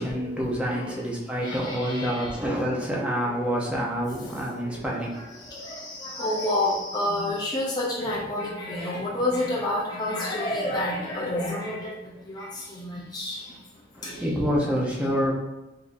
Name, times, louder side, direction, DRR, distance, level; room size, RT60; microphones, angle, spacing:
voice 1, 0.0-5.3 13.9-15.3, equal, 5° right, -4 dB, 0.8 m, -27 dB
voice 2, 0.7-1.0 1.4-2.3 5.5-11.9 12.3-12.5 12.8-13.4 14.0-14.1, left 1 dB, 25° left, -5 dB, 0.7 m, -29 dB
4.4 x 3.6 x 2.6 m, 1.0 s
head